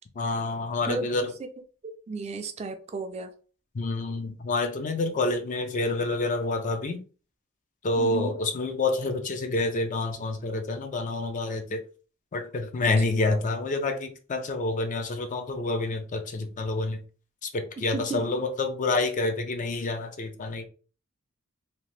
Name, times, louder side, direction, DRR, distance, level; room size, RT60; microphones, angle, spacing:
voice 1, 0.2-1.3 3.7-7.0 7.8-11.8 12.3-17.0 17.4-20.6, left 2 dB, 40° left, 0.4 m, -28 dB
voice 2, 1.8-3.3 8.0-8.4 12.8-12.9 17.9-18.3, right 4 dB, 30° right, 0.3 m, -33 dB
2.8 x 2.1 x 3.1 m
head